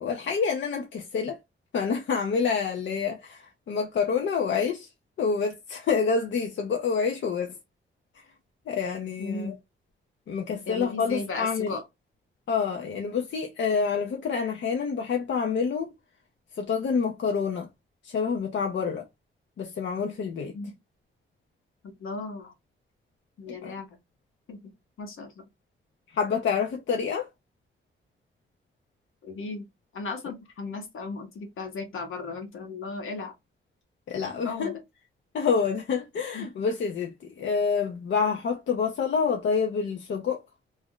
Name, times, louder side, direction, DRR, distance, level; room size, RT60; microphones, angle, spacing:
voice 1, 0.0-1.4 1.7-4.9 5.2-7.6 8.7-9.5 10.3-11.8 12.5-15.9 16.5-17.7 18.0-19.1 19.6-20.6 23.5-23.7 26.1-27.3 34.1-34.8 35.3-40.4, left 5 dB, 65° left, 0.5 m, -27 dB
voice 2, 9.2-9.6 10.7-11.8 20.5-20.7 22.0-22.5 23.4-24.0 24.5-24.7 25.0-25.5 29.2-29.7 29.9-33.3 34.4-34.8 36.3-36.5, left 3 dB, 80° left, 1.0 m, -36 dB
2.5 x 2.0 x 3.7 m
wide cardioid pair, 135°, 21 cm